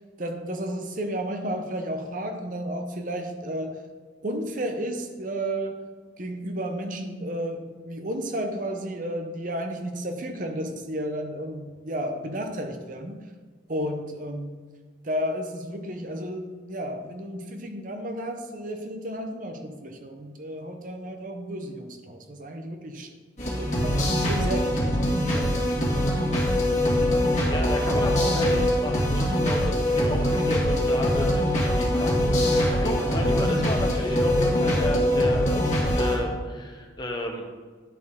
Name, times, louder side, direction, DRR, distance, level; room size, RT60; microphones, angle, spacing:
voice 1, 0.2-3.8 4.2-5.8 6.2-13.2 13.7-14.6 15.0-23.1 23.6-26.2 26.5-26.9, right 1 dB, 45° right, 4 dB, 0.7 m, -32 dB
electronic-base-loop-and-powerfull-lead, 23.4-36.2, left 1 dB, 40° left, 1.8 m, -23 dB
voice 2, 27.5-37.4, left 1 dB, 20° left, 2 dB, 0.8 m, -33 dB
11.0 x 4.2 x 3.6 m, 1.5 s
head